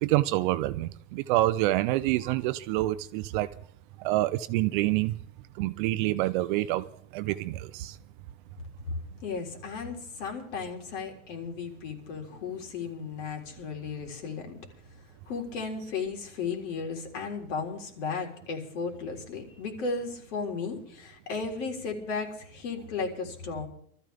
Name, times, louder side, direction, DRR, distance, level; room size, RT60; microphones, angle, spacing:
voice 1, 0.0-3.5 4.0-5.1 5.6-6.8 7.1-8.0, right 17 dB, 40° right, 13 dB, 0.5 m, -27 dB
voice 2, 9.2-14.6 15.3-23.7, left 5 dB, 60° left, 3 dB, 4.0 m, -35 dB
24.5 x 13.5 x 3.4 m, 0.64 s
supercardioid pair, 150°, 41 cm